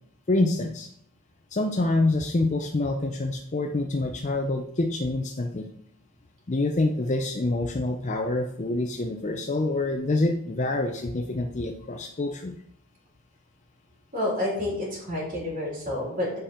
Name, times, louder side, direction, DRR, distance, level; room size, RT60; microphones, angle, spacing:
voice 1, 0.3-0.9 1.5-5.7 6.5-12.6, left 2 dB, 35° left, 4 dB, 0.5 m, -26 dB
voice 2, 14.1-16.4, left 1 dB, 40° right, -5 dB, 3.3 m, -29 dB
7.7 x 5.1 x 4.3 m, 0.68 s
head